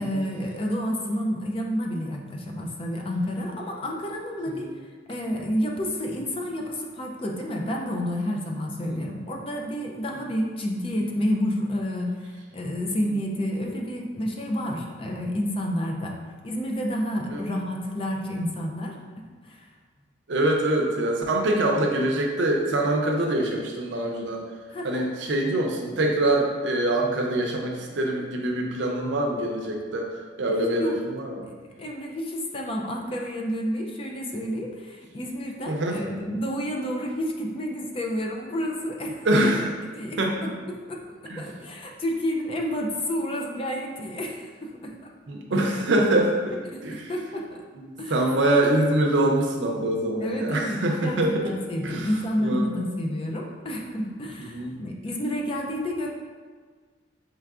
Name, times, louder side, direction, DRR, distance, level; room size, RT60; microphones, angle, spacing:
voice 1, 0.0-4.7 5.1-16.2 16.4-19.7 24.7-25.0 30.6-31.0 31.8-39.5 39.9-44.9 46.7-47.6 48.0-48.1 50.2-56.1, equal, 30° left, 1 dB, 0.4 m, -30 dB
voice 2, 20.3-24.4 24.8-31.5 35.7-36.0 39.2-39.7 40.2-40.4 41.3-41.5 45.3-46.6 46.8-47.1 47.7-51.5 51.8-52.7 54.5-54.7, right 1 dB, 70° right, 1 dB, 0.6 m, -24 dB
4.6 x 3.2 x 2.4 m, 1.5 s
head